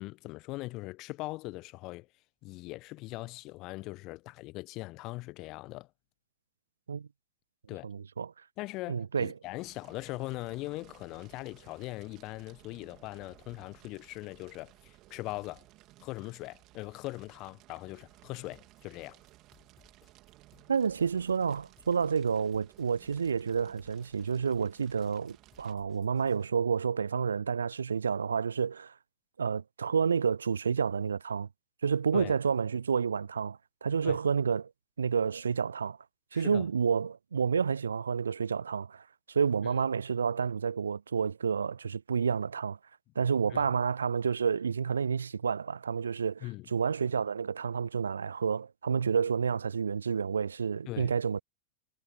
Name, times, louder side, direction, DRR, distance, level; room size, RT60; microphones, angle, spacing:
voice 1, 0.0-2.1 2.4-5.9 7.7-7.9 8.6-15.6 16.0-19.2 32.1-32.3 34.0-34.2 36.3-36.6 39.6-39.7 43.5-43.6 46.4-46.7 50.9-51.1, left 20 dB, 40° left, 1.2 m, -40 dB
voice 2, 7.8-8.3 8.9-9.3 20.7-28.9 29.4-31.5 31.8-34.7 35.0-36.0 36.3-42.8 43.2-51.4, right 6 dB, 70° right, 0.5 m, -30 dB
Fire, 9.6-25.7, right 18 dB, 35° right, 3.2 m, -58 dB
sound 1, 18.5-26.5, left 8 dB, 20° left, 6.4 m, -65 dB
figure-of-eight pair, 90°, 0 cm